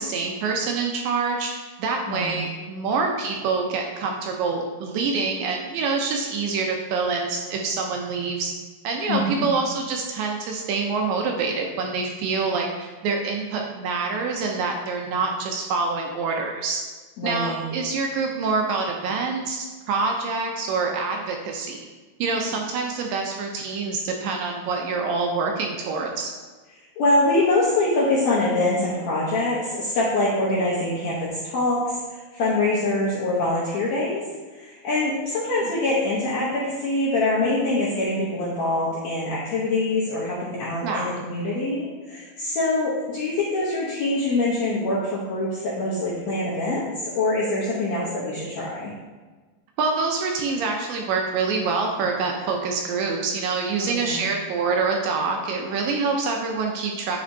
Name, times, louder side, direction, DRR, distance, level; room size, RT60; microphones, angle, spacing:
voice 1, 0.0-8.5 8.8-16.8 17.2-21.9 22.2-26.3 40.8-41.2 49.8-57.2, right 4 dB, 80° right, 1 dB, 2.1 m, -26 dB
voice 2, 2.1-2.4 9.0-9.5 17.2-17.6 27.0-34.2 34.5-48.9 53.8-54.2, left 2 dB, 70° left, -7 dB, 1.6 m, -24 dB
9.4 x 4.2 x 2.7 m, 1.3 s
omnidirectional pair, 4.3 m